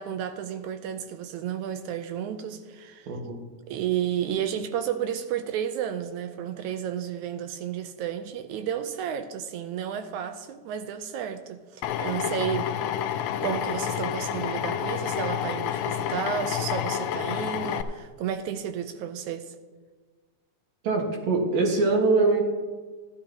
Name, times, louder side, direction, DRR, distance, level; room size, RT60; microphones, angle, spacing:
voice 1, 0.0-3.1 3.7-12.7 13.4-19.6, right 9 dB, 80° right, 1.9 m, -32 dB
voice 2, 3.1-3.4 20.8-22.4, right 3 dB, 60° right, 2.8 m, -23 dB
Drill, 11.8-17.8, left 9 dB, 80° left, 1.8 m, -29 dB
14.0 x 12.0 x 2.9 m
omnidirectional pair, 3.7 m